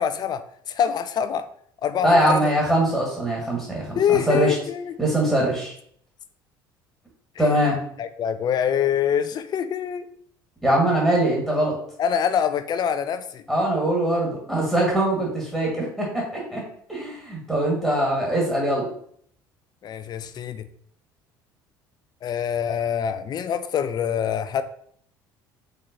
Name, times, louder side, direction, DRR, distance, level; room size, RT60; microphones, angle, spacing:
voice 1, 0.0-1.4 1.8-2.5 3.9-5.3 7.4-7.7 8.0-10.1 12.0-13.4 19.8-20.7 22.2-24.6, left 8 dB, 40° left, 11 dB, 0.4 m, -25 dB
voice 2, 2.0-4.5 5.0-5.7 7.4-7.8 10.6-11.8 13.5-16.6 16.9-18.9, right 1 dB, 5° right, -4 dB, 1.6 m, -22 dB
4.4 x 3.6 x 2.7 m, 0.63 s
figure-of-eight pair, 60°, 11 cm